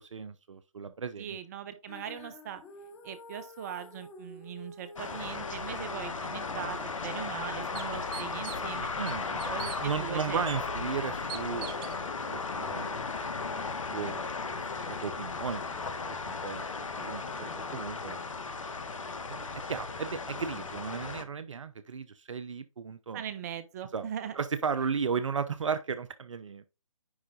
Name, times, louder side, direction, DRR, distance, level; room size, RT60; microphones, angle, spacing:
voice 1, 0.0-1.4 9.0-9.4 9.8-13.0 13.9-14.2 14.6-16.7 17.0-18.2 19.0-23.2 23.9-24.1 24.4-26.6, right 6 dB, 60° right, 0.7 m, -35 dB
voice 2, 1.2-2.6 3.0-8.9 9.3-10.4 23.1-24.4, right 9 dB, 30° right, 0.9 m, -40 dB
Female singing, 1.9-8.1, left 3 dB, 10° left, 1.1 m, -51 dB
sound 1, 5.0-21.2, left 4 dB, 65° left, 1.4 m, -36 dB
sound 2, 6.7-6.8 7.3-7.4 7.7-8.7 9.1-9.8 10.5-10.6 11.3-12.0, right 12 dB, 15° right, 0.4 m, -41 dB
9.9 x 3.7 x 3.7 m
figure-of-eight pair, 145°, 18 cm